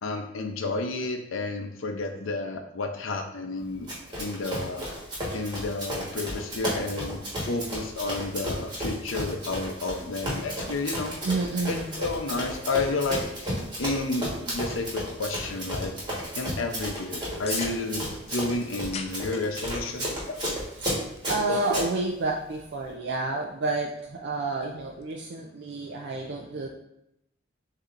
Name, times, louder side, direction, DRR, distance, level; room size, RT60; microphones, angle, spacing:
voice 1, 0.0-4.8 5.3-11.2 11.7-15.9 16.4-20.4, left 3 dB, 80° left, 5 dB, 0.6 m, -31 dB
Run, 3.9-21.9, equal, 25° right, 1.4 m, -33 dB
voice 2, 11.2-11.9 20.8-20.9 21.3-26.7, right 2 dB, 60° right, 0 dB, 0.4 m, -29 dB
sound 1, 14.6-25.1, left 5 dB, 30° left, 0.4 m, -47 dB
6.7 x 2.8 x 2.5 m, 0.82 s
head